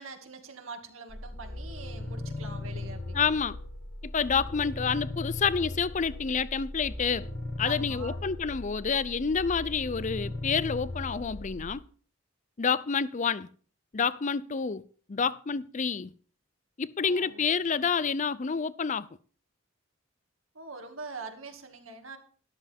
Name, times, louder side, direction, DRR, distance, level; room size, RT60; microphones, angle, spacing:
voice 1, 0.0-3.3 7.6-8.2 17.0-17.5 20.5-22.2, right 4 dB, 80° right, 2.2 m, -44 dB
sound 1, 1.1-11.7, left 2 dB, 60° left, 1.9 m, -38 dB
voice 2, 3.1-3.6 4.0-7.3 7.6-11.8 12.6-13.5 13.9-14.8 15.1-16.1 16.8-19.1, left 6 dB, 35° left, 0.5 m, -28 dB
13.0 x 13.0 x 3.6 m
head